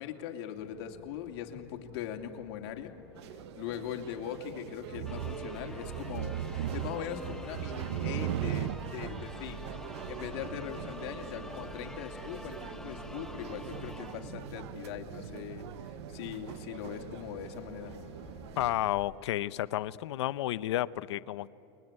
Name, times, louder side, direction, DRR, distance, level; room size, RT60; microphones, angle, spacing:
voice 1, 0.0-2.9 3.3-18.0, left 10 dB, 65° left, 4 dB, 2.8 m, -41 dB
sound 1, 0.6-19.2, left 7 dB, 45° left, 3.1 m, -55 dB
sound 2, 3.2-18.9, right 12 dB, 75° right, 0.9 m, -40 dB
sound 3, 5.1-15.0, left 1 dB, 5° left, 0.7 m, -46 dB
voice 2, 18.6-21.5, left 14 dB, 85° left, 17 dB, 0.7 m, -31 dB
30.0 x 22.0 x 8.9 m, 3.0 s
supercardioid pair, 135°, 14 cm